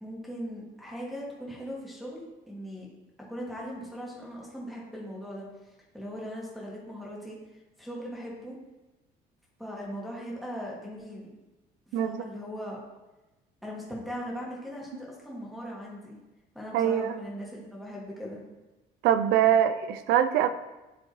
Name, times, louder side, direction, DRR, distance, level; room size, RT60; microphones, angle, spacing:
voice 1, 0.0-2.9 3.3-7.4 7.8-8.5 9.6-11.3 11.9-12.8 13.6-16.2 16.5-18.4, equal, ahead, -5 dB, 1.7 m, -39 dB
voice 2, 11.9-12.2 16.7-17.1 19.0-20.5, right 10 dB, 85° right, 10 dB, 0.4 m, -23 dB
9.4 x 3.5 x 3.1 m, 1.1 s
cardioid pair, 110°, 17 cm